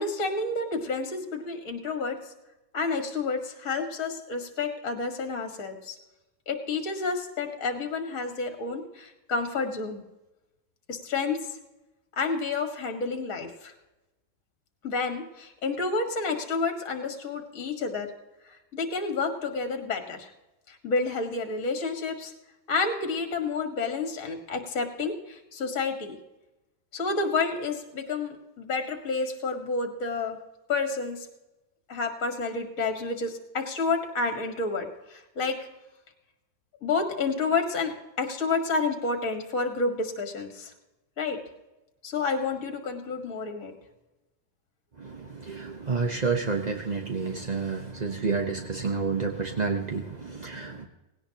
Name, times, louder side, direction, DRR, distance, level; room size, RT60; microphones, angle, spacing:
voice 1, 0.0-2.2 2.7-6.0 6.5-10.0 10.9-11.4 12.2-13.7 14.8-18.1 18.5-20.3 20.7-22.3 22.7-26.2 26.9-30.4 30.7-31.3 31.9-35.6 36.8-40.7 41.2-41.4 42.0-43.7, left 4 dB, 45° left, 5 dB, 1.9 m, -30 dB
voice 2, 45.0-50.8, right 4 dB, 45° right, 3 dB, 0.5 m, -30 dB
18.5 x 17.5 x 2.9 m, 1.0 s
omnidirectional pair, 2.2 m